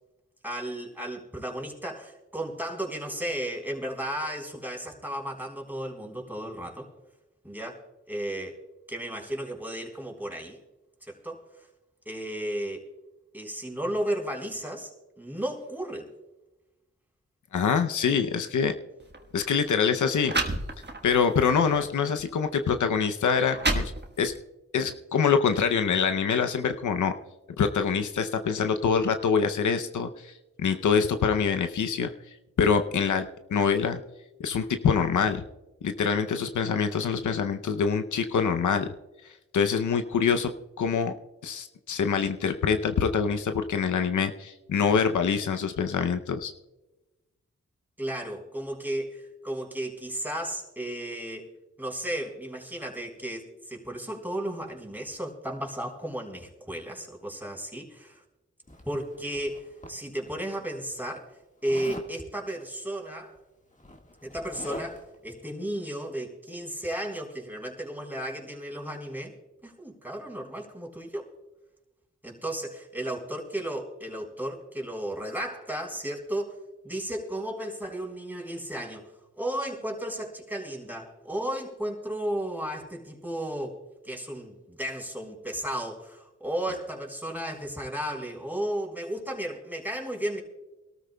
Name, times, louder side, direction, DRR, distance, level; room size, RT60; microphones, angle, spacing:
voice 1, 0.4-6.9 7.4-8.6 8.9-10.6 11.1-11.4 12.1-12.8 13.3-14.9 15.2-16.1 48.0-51.5 51.8-58.2 58.8-61.3 61.6-63.3 64.2-69.3 69.6-71.3 72.2-76.6 76.8-79.1 79.4-83.8 84.0-90.4, right 1 dB, 5° right, 1 dB, 3.8 m, -34 dB
voice 2, 17.5-18.7 19.3-20.3 21.0-23.9 24.2-24.3 24.7-27.1 27.6-30.3 30.6-32.1 32.6-33.2 33.5-34.0 34.4-35.4 35.8-38.9 39.5-40.5 40.8-41.1 41.4-46.5, left 6 dB, 90° left, 7 dB, 0.7 m, -25 dB
sound 1, 19.0-19.2 19.9-20.0 20.3-21.2 21.7-21.9 22.7-22.8 23.3-24.4, right 2 dB, 35° right, 1.4 m, -29 dB
Zipper (clothing), 58.7-60.3 61.7-62.1 63.3-63.4 63.7-65.2, left 1 dB, 25° left, 1.6 m, -42 dB
24.5 x 13.0 x 2.2 m, 1.1 s
cardioid pair, 45°, 29 cm